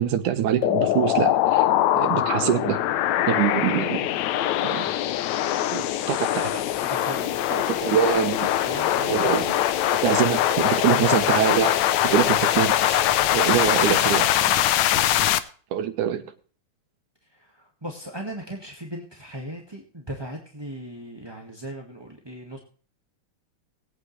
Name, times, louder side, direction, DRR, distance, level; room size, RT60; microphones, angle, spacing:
voice 1, 0.0-1.6 1.9-2.9 3.3-4.1 4.6-4.9 5.6-6.7 7.5-8.5 9.0-9.6 10.0-13.0 13.3-14.3 14.9-15.2 15.7-16.2, right 9 dB, 80° right, 8 dB, 2.7 m, -24 dB
sound 1, 0.6-15.4, left 12 dB, 75° left, 1.9 m, -22 dB
voice 2, 6.8-7.7 8.6-9.3 15.1-15.2 17.3-22.6, right 1 dB, 15° right, 1 dB, 1.0 m, -38 dB
21.0 x 8.8 x 3.2 m, 0.43 s
omnidirectional pair, 3.5 m